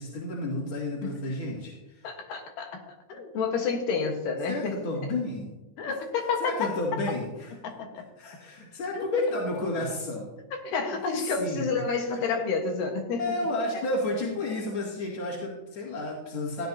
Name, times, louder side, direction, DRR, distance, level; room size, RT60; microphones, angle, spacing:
voice 1, 0.0-2.1 4.5-5.5 5.9-6.0 6.4-7.5 8.2-10.3 10.9-11.6 12.1-12.2 13.2-16.7, left 2 dB, 45° left, -7 dB, 2.9 m, -31 dB
voice 2, 2.0-4.8 5.8-6.9 7.6-8.0 8.9-9.0 10.5-13.2, left 4 dB, 85° left, 3 dB, 3.1 m, -30 dB
16.0 x 10.5 x 2.8 m, 1.0 s
omnidirectional pair, 3.7 m